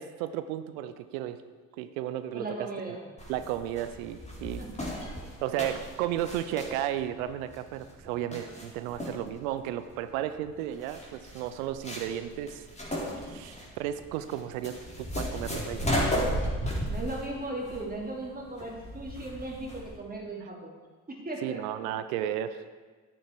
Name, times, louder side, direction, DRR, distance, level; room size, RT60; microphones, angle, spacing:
voice 1, 0.0-1.4 1.8-3.0 3.3-4.6 5.4-12.6 13.2-15.9 21.4-22.6, right 11 dB, 80° right, 11 dB, 0.7 m, -34 dB
voice 2, 2.3-3.0 4.6-4.7 16.6-20.7 21.1-21.6, right 2 dB, 20° right, -1 dB, 3.0 m, -37 dB
sound 1, 3.2-20.0, equal, 15° left, 3.9 m, -35 dB
10.0 x 9.5 x 4.7 m, 1.4 s
hypercardioid pair, 60°, 41 cm